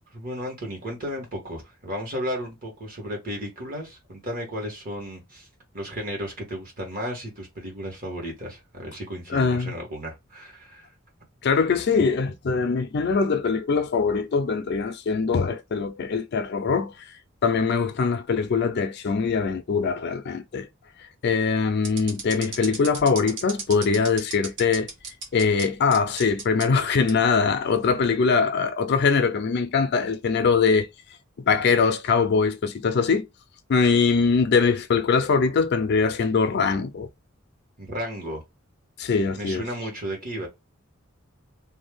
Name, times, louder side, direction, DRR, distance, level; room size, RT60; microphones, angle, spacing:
voice 1, 0.1-5.5 5.7-10.9 37.8-38.4 39.0-39.1 39.4-40.5, equal, 45° right, 1.3 m, -34 dB
voice 2, 9.3-9.7 11.4-16.9 17.4-20.7 21.2-24.9 25.3-30.9 31.5-33.3 33.7-37.1 39.0-39.6, left 5 dB, 55° left, 0.4 m, -22 dB
sound 1, 21.8-25.6 25.9-26.6 27.1-27.2 27.8-28.1, right 4 dB, 60° right, 0.9 m, -34 dB
2.6 x 2.3 x 3.4 m
head